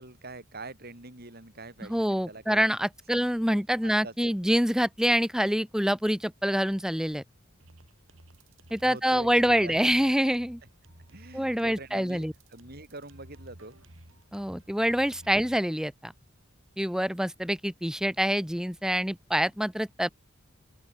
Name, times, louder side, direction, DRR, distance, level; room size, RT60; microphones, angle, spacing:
voice 1, 0.0-2.7 3.1-3.3 3.8-4.5 8.8-9.8 11.1-13.8 15.2-15.3, right 2 dB, 50° right, 7.7 m, -45 dB
voice 2, 1.9-7.2 8.7-10.6 11.3-12.3 14.3-16.1 16.8-20.1, equal, 5° right, 1.4 m, -26 dB
sound 1, 7.6-15.6, right 1 dB, 80° right, 4.0 m, -54 dB
open air
head